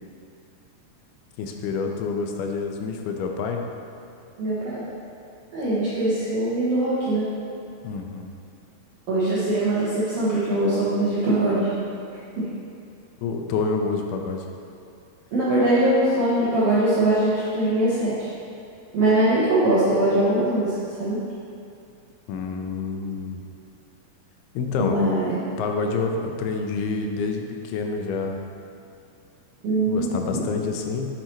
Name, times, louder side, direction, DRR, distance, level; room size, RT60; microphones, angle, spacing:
voice 1, 1.4-3.6 7.8-8.3 13.2-14.5 22.3-23.4 24.6-25.0 25.6-28.4 29.9-31.1, left 4 dB, 90° left, 3 dB, 2.5 m, -28 dB
voice 2, 4.4-4.8 5.5-7.2 9.1-11.7 12.4-12.5 15.3-18.3 18.9-21.2 24.6-25.5 29.6-30.4, right 1 dB, 60° right, -12 dB, 1.6 m, -22 dB
7.9 x 4.8 x 3.0 m, 2.5 s
omnidirectional pair, 4.3 m